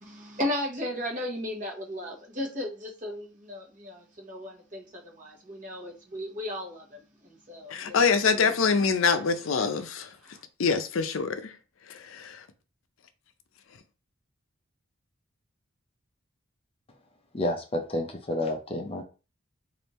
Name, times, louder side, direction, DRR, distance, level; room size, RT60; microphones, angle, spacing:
voice 1, 0.0-8.0 8.4-8.5 10.3-10.4, left 1 dB, 40° right, 1.1 m, -35 dB
voice 2, 7.7-11.6 11.9-12.4, left 5 dB, 75° left, 0.5 m, -25 dB
voice 3, 17.3-19.0, left 1 dB, 25° left, 0.5 m, -30 dB
3.4 x 2.5 x 4.1 m
head